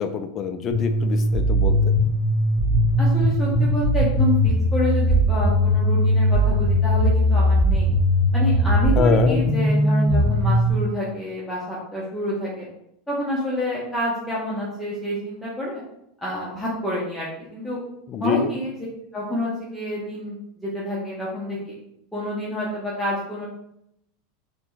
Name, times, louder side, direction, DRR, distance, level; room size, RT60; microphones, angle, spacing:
voice 1, 0.0-1.9 9.0-9.4 18.1-18.5, left 6 dB, 40° left, 7 dB, 0.3 m, -25 dB
sound 1, 0.7-10.7, equal, 15° right, 1.4 m, -19 dB
voice 2, 3.0-7.9 8.3-12.7 13.1-15.8 16.2-17.8 18.2-18.8 19.1-21.7 22.1-23.5, equal, 5° left, -7 dB, 0.7 m, -28 dB
3.3 x 2.1 x 3.1 m, 0.77 s
hypercardioid pair, 110°, 0 cm